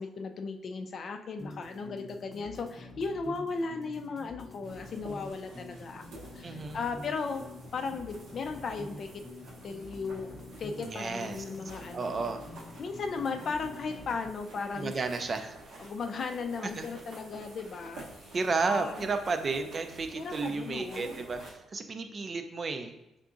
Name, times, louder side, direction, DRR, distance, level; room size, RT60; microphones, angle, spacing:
voice 1, 0.0-7.5 7.7-9.2 9.6-12.2 12.8-14.9 15.8-18.4 18.7-19.1 20.2-21.2, left 4 dB, 55° left, 5 dB, 0.4 m, -36 dB
sound 1, 1.4-14.3, left 2 dB, 20° left, 0.7 m, -47 dB
sound 2, 4.6-21.5, right 2 dB, 85° right, 0.9 m, -50 dB
voice 2, 6.4-6.8 10.8-11.4 11.9-12.4 14.8-15.6 16.6-16.9 18.3-22.9, right 4 dB, 40° right, 7 dB, 0.4 m, -32 dB
4.5 x 3.6 x 2.5 m, 0.89 s
cardioid pair, 90°, 0 cm